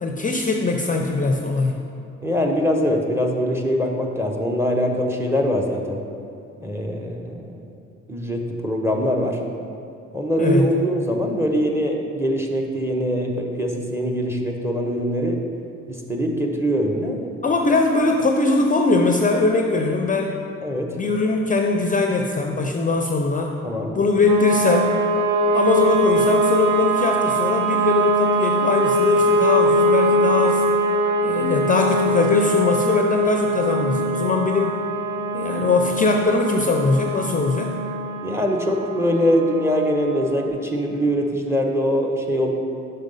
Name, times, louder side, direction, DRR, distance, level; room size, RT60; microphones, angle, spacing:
voice 1, 0.0-1.9 10.4-10.7 17.4-20.4 21.0-23.6 23.9-25.0 25.5-30.6 31.2-34.8 35.3-37.7, left 3 dB, 25° left, 2 dB, 0.5 m, -21 dB
voice 2, 2.2-6.0 6.6-7.6 8.1-9.4 10.1-15.4 15.9-17.3 20.6-20.9 23.6-23.9 38.2-42.5, equal, 10° right, 2 dB, 0.8 m, -23 dB
sound 1, 24.3-40.5, right 1 dB, 70° right, 0.9 m, -22 dB
5.5 x 5.2 x 5.3 m, 2.5 s
cardioid pair, 90°, 30 cm